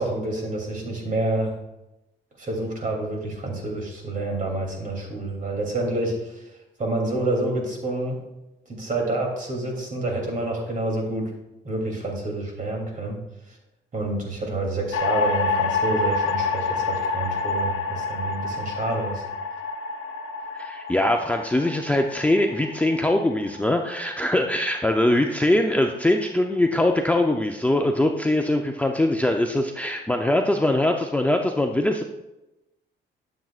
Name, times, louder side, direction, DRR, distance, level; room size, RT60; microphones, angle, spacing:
voice 1, 0.0-1.5 2.4-6.5 6.8-8.2 8.7-11.3 11.6-13.2 13.9-19.2, right 2 dB, 40° right, 0 dB, 3.0 m, -28 dB
sound 1, 14.9-25.2, left 4 dB, 90° left, 0.9 m, -28 dB
voice 2, 20.5-32.0, left 1 dB, 5° left, 3 dB, 0.6 m, -22 dB
12.0 x 7.4 x 2.5 m, 0.95 s
cardioid pair, 90°, 20 cm